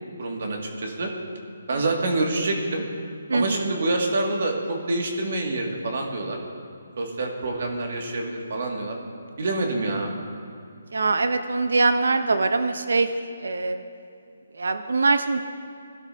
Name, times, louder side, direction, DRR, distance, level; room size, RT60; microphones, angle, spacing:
voice 1, 0.2-1.1 1.7-2.8 3.3-6.4 7.0-9.0 9.4-10.1, right 2 dB, 60° right, 1 dB, 2.1 m, -26 dB
voice 2, 3.3-3.7 10.9-13.1 13.4-13.8 14.6-15.4, right 3 dB, 85° right, 9 dB, 0.7 m, -23 dB
20.0 x 12.5 x 2.8 m, 2.3 s
hypercardioid pair, 165°, 0 cm